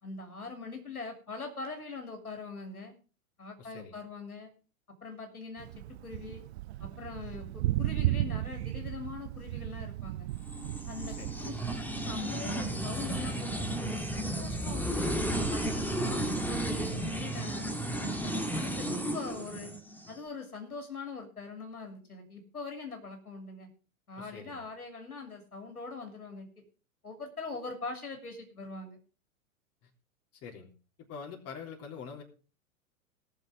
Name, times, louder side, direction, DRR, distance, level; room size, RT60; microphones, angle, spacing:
voice 1, 0.0-2.9 3.4-4.5 5.0-6.4 6.8-10.3 10.9-15.1 15.5-17.7 18.2-19.7 20.1-23.7 24.1-26.5 27.0-29.0, left 4 dB, 85° left, 4 dB, 3.0 m, -42 dB
voice 2, 3.6-4.0 11.1-11.4 24.2-24.6 29.8-29.9 30.4-30.7 31.1-32.2, left 6 dB, 35° left, 1 dB, 3.6 m, -45 dB
Thunder, 5.6-17.2, right 16 dB, 50° right, 0.6 m, -37 dB
sound 1, 10.4-20.1, right 1 dB, 5° left, 1.8 m, -33 dB
18.5 x 6.8 x 4.9 m, 0.35 s
figure-of-eight pair, 100°, 43 cm